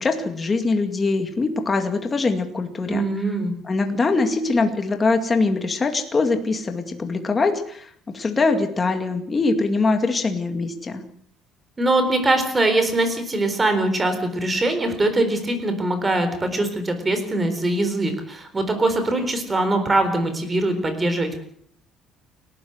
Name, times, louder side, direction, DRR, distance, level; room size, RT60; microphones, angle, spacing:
voice 1, 0.0-3.0 3.6-11.0, left 3 dB, 20° left, 5 dB, 2.2 m, -22 dB
voice 2, 2.9-3.5 11.8-21.5, right 2 dB, 15° right, 8 dB, 4.0 m, -22 dB
29.0 x 13.0 x 7.9 m, 0.63 s
cardioid pair, 170°, 0 cm